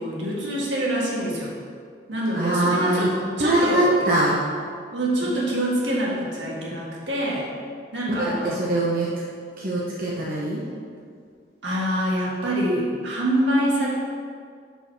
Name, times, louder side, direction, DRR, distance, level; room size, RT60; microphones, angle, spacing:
voice 1, 0.0-1.5 2.1-3.9 4.9-7.5 7.9-8.6 11.6-14.0, right 1 dB, 80° right, -5 dB, 1.7 m, -25 dB
voice 2, 2.3-3.1 3.4-4.4 8.1-9.1 9.6-10.6, right 1 dB, 50° right, -6 dB, 0.9 m, -22 dB
6.2 x 5.4 x 4.6 m, 2.1 s
head